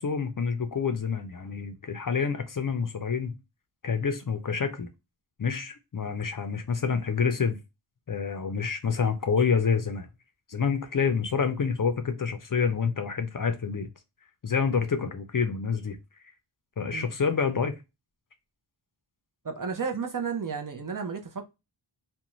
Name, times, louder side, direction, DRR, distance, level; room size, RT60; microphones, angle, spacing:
voice 1, 0.0-3.3 3.8-4.9 5.4-7.6 8.1-10.1 10.5-13.9 14.4-16.0 16.8-17.7, left 5 dB, 45° left, 0.5 m, -27 dB
voice 2, 19.4-21.5, right 6 dB, 45° right, 0.6 m, -32 dB
2.5 x 2.2 x 2.9 m
wide cardioid pair, 40°, 47 cm